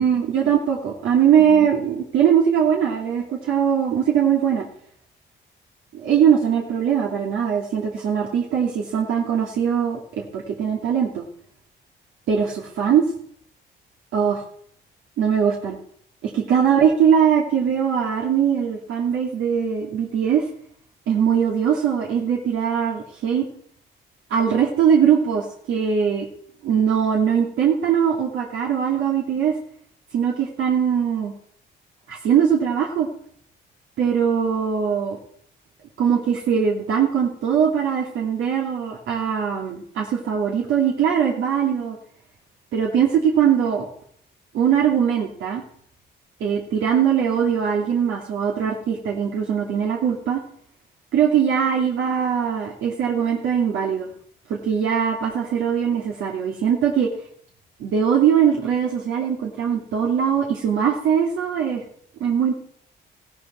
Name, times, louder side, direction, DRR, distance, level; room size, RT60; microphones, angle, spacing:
voice 1, 0.0-4.6 6.0-11.2 12.3-13.1 14.1-14.4 15.2-15.8 16.2-20.4 21.1-23.5 24.3-26.3 26.6-29.6 30.1-31.3 32.1-33.1 34.0-35.2 36.0-42.0 42.7-43.9 44.5-45.6 46.4-50.4 51.1-54.1 54.5-57.1 57.8-61.8 62.2-62.5, right 8 dB, 80° right, -2 dB, 2.6 m, -21 dB
15.5 x 12.5 x 4.5 m, 0.63 s
cardioid pair, 90°, 20 cm